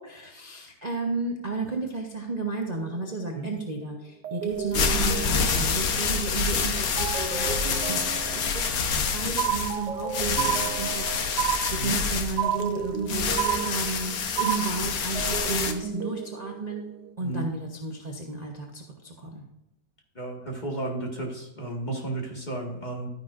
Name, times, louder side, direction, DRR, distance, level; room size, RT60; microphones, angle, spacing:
voice 1, 0.0-16.9 17.2-19.4, right 3 dB, 30° right, 0 dB, 0.9 m, -33 dB
sound 1, 2.7-3.7 4.2-9.4 9.7-14.7 15.0-17.1, right 7 dB, 90° right, 1.5 m, -36 dB
sound 2, 4.5-15.7, left 5 dB, 65° left, 1.4 m, -27 dB
sound 3, 9.4-10.0 10.4-11.0 11.4-12.0 12.4-13.0 13.4-14.0 14.4-14.9, right 12 dB, 65° right, 0.6 m, -28 dB
voice 2, 17.2-17.5 20.1-23.1, right 2 dB, 25° left, -1 dB, 1.9 m, -33 dB
12.0 x 10.0 x 2.5 m, 0.92 s
omnidirectional pair, 1.8 m